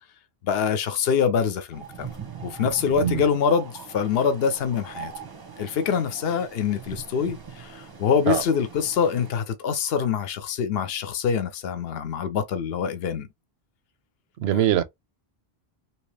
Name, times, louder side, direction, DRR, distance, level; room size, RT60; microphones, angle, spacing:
voice 1, 0.4-2.1 2.4-5.1 5.6-13.3 14.5-14.6, left 6 dB, 70° left, 0.9 m, -25 dB
sound 1, 1.7-9.3, right 7 dB, 25° right, 0.6 m, -40 dB
voice 2, 14.4-14.8, right 11 dB, 80° right, 0.8 m, -22 dB
3.0 x 2.9 x 3.1 m
omnidirectional pair, 1.1 m